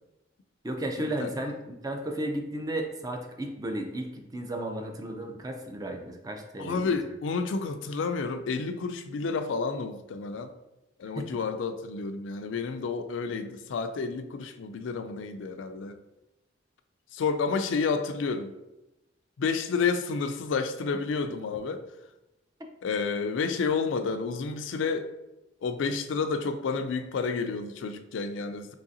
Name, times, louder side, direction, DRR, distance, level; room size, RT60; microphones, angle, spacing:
voice 1, 0.6-7.0 11.2-11.3, right 1 dB, 20° right, 3 dB, 0.4 m, -34 dB
voice 2, 6.6-10.5 11.0-16.0 17.1-18.5 19.4-21.8 22.8-25.1 25.6-28.7, left 4 dB, 80° left, 9 dB, 0.4 m, -30 dB
3.7 x 3.2 x 2.7 m, 0.96 s
head